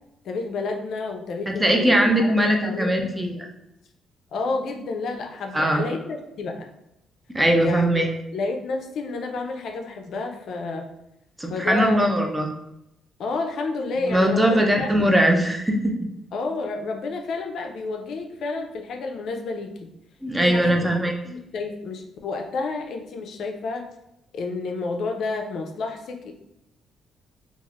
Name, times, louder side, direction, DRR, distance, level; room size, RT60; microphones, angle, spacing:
voice 1, 0.2-3.2 4.3-6.7 7.6-8.0 8.3-10.9 11.5-12.1 13.2-15.1 16.3-19.9 20.4-20.8 21.2-23.9 24.3-26.3, left 3 dB, 70° left, 4 dB, 0.4 m, -30 dB
voice 2, 1.5-3.5 5.5-5.8 7.3-8.1 11.4-12.5 14.1-15.9 20.2-21.1, right 1 dB, 10° right, 2 dB, 0.5 m, -20 dB
3.1 x 2.3 x 2.4 m, 0.85 s
cardioid pair, 90°, 0 cm